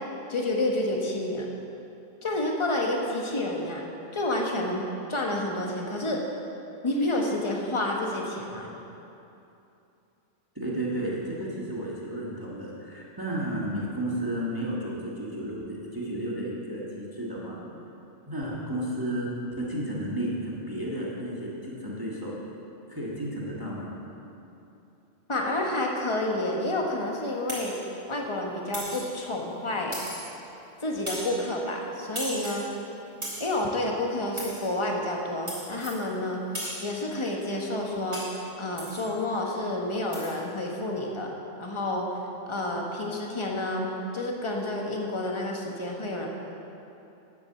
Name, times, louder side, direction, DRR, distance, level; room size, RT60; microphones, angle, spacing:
voice 1, 0.3-1.5 2.2-3.8 4.1-4.8 5.1-6.2 6.8-8.7 25.3-27.8 28.1-30.0 30.8-32.6 33.4-36.4 36.8-38.2 38.6-41.3 41.6-42.1 42.5-43.9 44.1-46.3, left 1 dB, 25° left, 0 dB, 1.3 m, -29 dB
voice 2, 10.5-17.6 18.3-22.3 22.9-23.9, right 1 dB, 15° right, -6 dB, 1.6 m, -32 dB
sound 1, 27.5-27.8 28.7-29.1 29.9-30.4 31.1-31.4 32.1-32.7 33.2-33.6 34.4-34.7 35.5-36.0 36.5-36.9 38.1-38.4 38.8-39.1 40.1-40.3, right 1 dB, 45° right, 3.5 m, -36 dB
10.0 x 7.9 x 7.0 m, 2.9 s
omnidirectional pair, 1.3 m